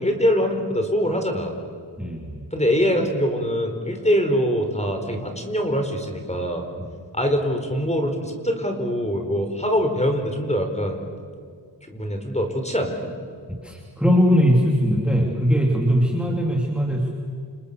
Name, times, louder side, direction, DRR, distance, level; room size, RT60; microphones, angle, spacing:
voice 1, 0.0-1.5 2.5-6.6 7.1-11.0 11.9-13.1, equal, 15° left, 4 dB, 4.5 m, -23 dB
voice 2, 2.0-2.4 6.8-6.9 13.5-17.1, equal, ahead, 0 dB, 3.1 m, -20 dB
29.5 x 28.0 x 6.9 m, 2.1 s
wide cardioid pair, 85°, 44 cm